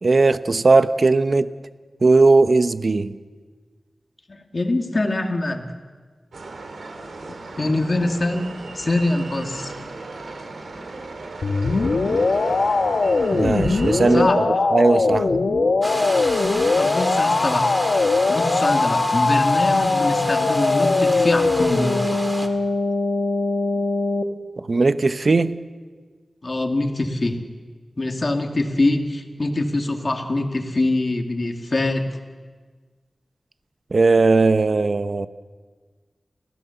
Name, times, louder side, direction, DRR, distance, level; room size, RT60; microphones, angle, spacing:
voice 1, 0.0-1.5 2.0-3.2 13.3-14.3 14.7-15.3 24.6-25.6 33.9-35.3, right 3 dB, 50° right, 12 dB, 0.8 m, -18 dB
voice 2, 4.3-5.7 7.6-9.7 14.1-14.4 16.8-17.7 18.3-22.3 26.4-27.4 28.0-32.2, left 2 dB, 40° left, 4 dB, 2.0 m, -24 dB
sound 1, 6.3-14.3, right 3 dB, 85° right, 2.9 m, -36 dB
sound 2, 11.4-24.2, left 3 dB, 65° left, 1.3 m, -21 dB
sound 3, 15.8-22.5, equal, 10° right, 2.0 m, -31 dB
30.0 x 15.0 x 7.0 m, 1.5 s
wide cardioid pair, 110°, 0 cm